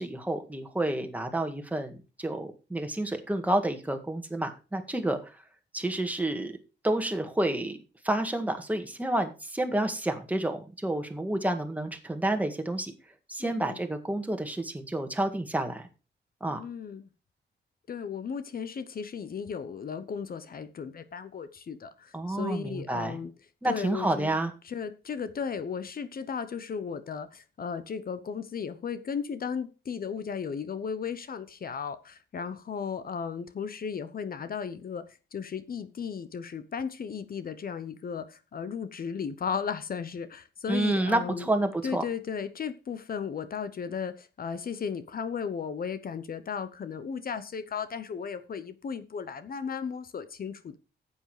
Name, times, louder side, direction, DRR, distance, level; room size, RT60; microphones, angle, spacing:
voice 1, 0.0-5.3 5.7-6.5 6.8-7.8 8.0-12.9 13.3-15.9 16.4-16.6 22.1-23.2 23.6-24.5 40.7-42.0, right 1 dB, 10° right, 5 dB, 1.9 m, -29 dB
voice 2, 13.4-13.8 16.6-17.1 17.9-23.3 23.7-24.4 24.6-35.0 35.3-41.5 41.8-50.8, left 6 dB, 55° left, 12 dB, 1.0 m, -35 dB
9.8 x 8.3 x 5.0 m, 0.32 s
wide cardioid pair, 115°, 18 cm